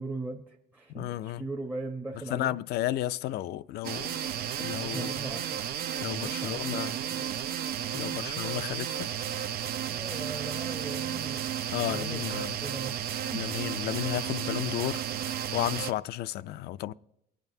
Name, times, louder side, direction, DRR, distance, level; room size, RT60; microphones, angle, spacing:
voice 1, 0.0-2.6 4.9-5.6 6.2-7.4 9.9-13.5, right 2 dB, 10° right, 0.8 m, -40 dB
voice 2, 0.9-1.4 2.3-4.1 4.6-5.1 6.0-6.9 7.9-9.1 11.7-12.5 13.3-16.9, left 14 dB, 75° left, 0.4 m, -33 dB
sound 1, 3.8-15.9, right 10 dB, 65° right, 0.6 m, -33 dB
24.0 x 9.1 x 2.7 m
cardioid pair, 110°, 17 cm